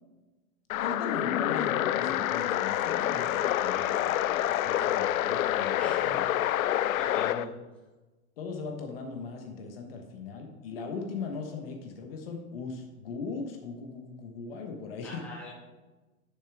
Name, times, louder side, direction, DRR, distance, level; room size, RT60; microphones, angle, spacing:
sound 1, 0.7-7.4, left 12 dB, 80° left, 0.5 m, -27 dB
voice 1, 0.7-6.2 7.2-7.4 8.4-15.2, left 4 dB, 45° left, 3 dB, 1.2 m, -39 dB
voice 2, 5.8-6.2 7.0-7.5 15.0-15.5, left 2 dB, 5° left, -6 dB, 1.3 m, -43 dB
9.7 x 6.9 x 3.4 m, 1.2 s
hypercardioid pair, 165°, 41 cm